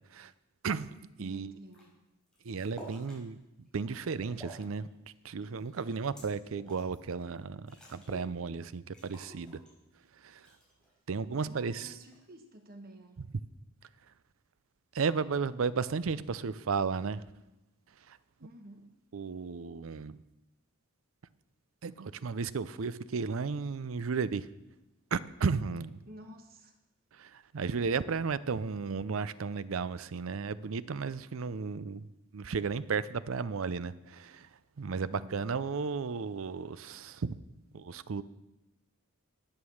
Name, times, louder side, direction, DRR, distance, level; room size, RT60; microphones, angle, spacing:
voice 1, 0.6-1.5 2.4-3.4 3.7-4.9 5.2-9.6 10.2-10.4 11.1-11.9 14.9-17.2 18.1-18.2 19.1-20.2 21.8-24.5 25.1-26.0 27.1-32.1 32.3-34.5 34.8-37.4 37.7-38.2, right 5 dB, 70° right, 16 dB, 0.5 m, -34 dB
voice 2, 1.2-1.9 11.4-13.2 18.4-18.9 26.1-26.8 35.1-35.6, right 1 dB, 45° right, 5 dB, 1.2 m, -51 dB
sound 1, 1.7-1.8 2.2-3.2 3.7-4.8 5.1-6.9 7.4-7.5 7.6-8.3 8.6-8.7 8.9-10.0 10.4-11.0 11.8-12.3, right 1 dB, 5° left, 5.0 m, -51 dB
11.5 x 9.2 x 6.4 m, 0.98 s
head